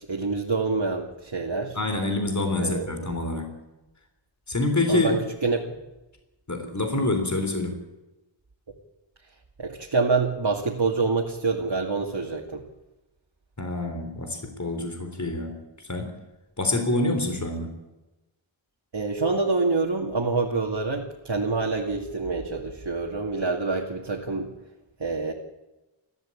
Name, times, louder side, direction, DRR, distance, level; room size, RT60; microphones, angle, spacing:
voice 1, 0.0-1.8 2.6-3.2 4.9-5.7 9.6-12.6 18.9-24.5 25.0-25.3, right 3 dB, 60° right, 0 dB, 2.5 m, -26 dB
voice 2, 1.8-3.5 4.5-5.1 6.5-7.8 13.6-16.2 16.6-17.7, left 2 dB, 35° left, 5 dB, 4.0 m, -26 dB
29.0 x 13.5 x 8.7 m, 1.1 s
wide cardioid pair, 60°, 47 cm